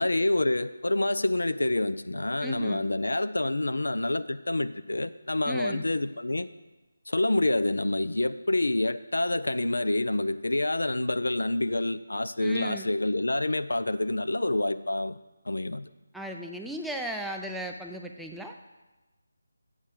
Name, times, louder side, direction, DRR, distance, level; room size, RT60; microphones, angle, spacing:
voice 1, 0.0-6.5 7.1-15.2 15.5-15.9, left 2 dB, 65° left, 13 dB, 0.5 m, -27 dB
voice 2, 2.4-2.8 5.5-5.8 12.4-12.9 16.1-18.6, right 1 dB, ahead, 1 dB, 0.4 m, -36 dB
8.1 x 6.4 x 7.5 m, 1.1 s
figure-of-eight pair, 155°, 0 cm